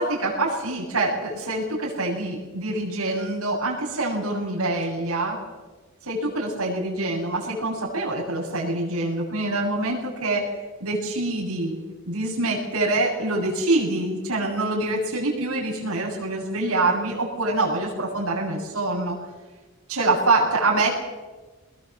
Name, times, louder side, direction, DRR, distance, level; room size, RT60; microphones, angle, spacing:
voice 1, 0.0-5.4 6.0-10.5 10.8-11.8 12.1-19.2 19.9-20.9, right 2 dB, 85° right, -3 dB, 7.4 m, -25 dB
22.0 x 20.5 x 7.5 m, 1.3 s
head